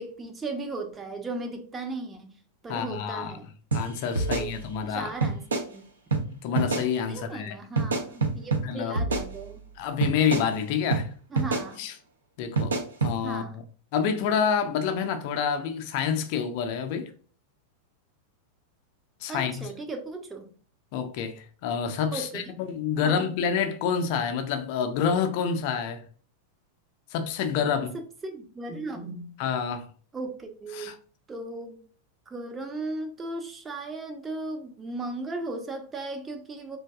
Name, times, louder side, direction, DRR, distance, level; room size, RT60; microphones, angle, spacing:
voice 1, 0.0-2.3 2.6-3.5 4.2-4.6 4.9-5.8 7.1-9.6 11.3-11.8 13.2-13.6 19.3-20.5 22.1-22.4 23.0-23.2 27.9-29.3 30.1-31.0 31.3-31.8 32.3-36.8, right 2 dB, 15° right, 0.5 m, -36 dB
voice 2, 2.7-3.3 3.7-5.1 6.4-7.6 8.6-9.1 9.8-11.1 11.8-11.9 12.4-13.5 13.9-17.1 19.2-19.7 20.9-26.0 27.1-27.9 29.4-29.9 30.7-31.0, left 7 dB, 45° left, 0.4 m, -28 dB
sound 1, 3.7-3.8 4.2-4.9 5.2-5.7 6.1-6.2 6.6-6.9 7.8-8.6 9.0-9.7 10.0-10.5 10.9-11.0 11.4-11.7 12.6-13.1, right 3 dB, 70° right, 0.5 m, -26 dB
3.3 x 2.6 x 2.3 m
figure-of-eight pair, 90°, 0 cm